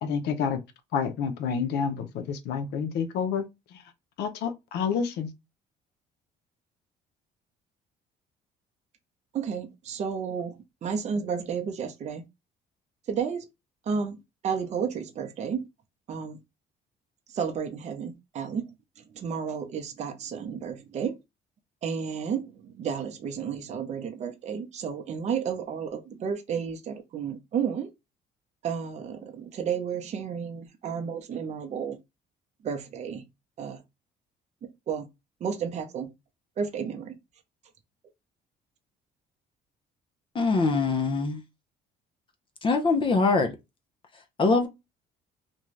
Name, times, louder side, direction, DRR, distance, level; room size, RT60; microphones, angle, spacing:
voice 1, 0.0-0.6 0.9-3.8 4.2-5.3, left 6 dB, 75° left, 0.6 m, -29 dB
voice 2, 9.3-12.3 13.1-13.5 13.9-14.2 14.4-15.7 16.1-16.4 17.3-21.2 21.8-27.9 28.6-32.0 32.6-33.2 33.6-33.8 34.6-35.1 35.4-36.1 36.6-37.2, right 6 dB, 45° right, 0.6 m, -32 dB
voice 3, 40.3-41.4 42.6-43.5 44.4-44.7, left 3 dB, 30° left, 0.6 m, -23 dB
2.6 x 2.3 x 3.1 m
cardioid pair, 110°, 17 cm